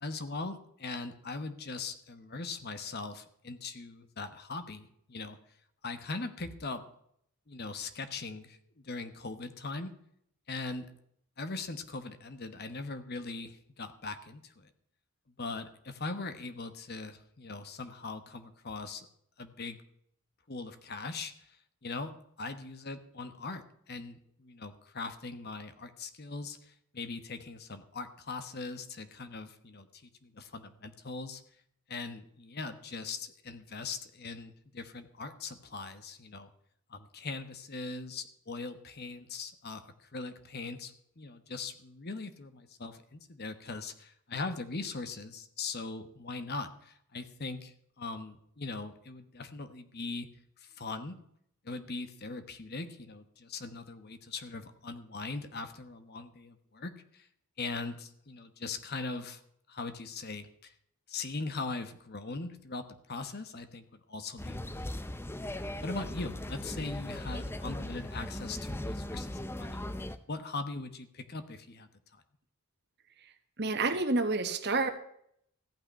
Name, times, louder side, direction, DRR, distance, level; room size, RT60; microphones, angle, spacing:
voice 1, 0.0-5.4 5.8-6.8 7.5-9.9 10.5-10.9 11.4-14.7 15.4-19.1 19.4-19.8 20.5-21.6 21.8-31.4 31.9-36.5 36.9-50.3 50.6-51.2 51.6-57.3 57.6-59.4 59.7-60.7 61.1-65.2 65.8-69.9 70.3-71.9, left 3 dB, 45° left, 10 dB, 1.1 m, -40 dB
sound 1, 64.4-70.2, left 1 dB, 10° left, 0.6 m, -38 dB
voice 2, 73.6-74.9, right 3 dB, 50° right, 8 dB, 1.3 m, -28 dB
15.0 x 5.8 x 10.0 m, 0.70 s
head